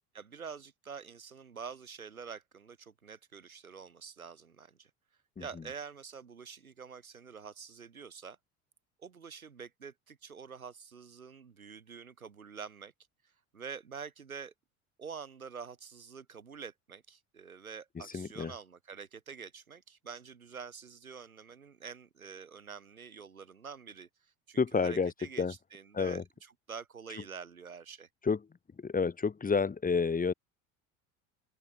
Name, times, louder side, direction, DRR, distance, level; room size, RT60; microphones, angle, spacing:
voice 1, 0.1-4.9 5.4-8.4 9.0-12.9 13.2-14.5 15.0-28.1, right 6 dB, 90° right, 4.8 m, -47 dB
voice 2, 18.1-18.5 24.6-25.1 25.4-25.5 25.9-26.2 28.2-28.4 28.8-30.3, left 5 dB, 20° left, 1.7 m, -29 dB
open air
hypercardioid pair, 70°, 41 cm